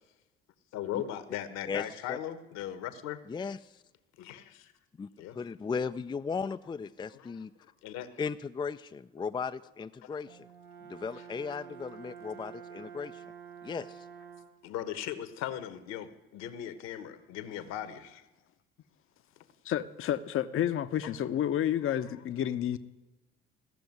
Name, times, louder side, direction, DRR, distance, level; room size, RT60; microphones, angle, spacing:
voice 1, 0.7-3.2 4.2-4.7 5.2-5.4 7.1-7.3 7.8-8.1 10.0-10.2 14.6-18.2, left 11 dB, 65° left, 12 dB, 1.2 m, -38 dB
voice 2, 1.7-2.2 3.3-3.8 5.0-5.1 5.3-7.5 8.2-10.5 10.9-13.2 13.6-14.1, left 5 dB, 15° left, 10 dB, 0.4 m, -36 dB
Brass instrument, 10.3-14.7, right 7 dB, 75° right, 1.1 m, -48 dB
voice 3, 19.6-22.8, left 11 dB, 45° left, 11 dB, 0.8 m, -30 dB
15.5 x 6.9 x 9.4 m, 1.1 s
hypercardioid pair, 55°, 29 cm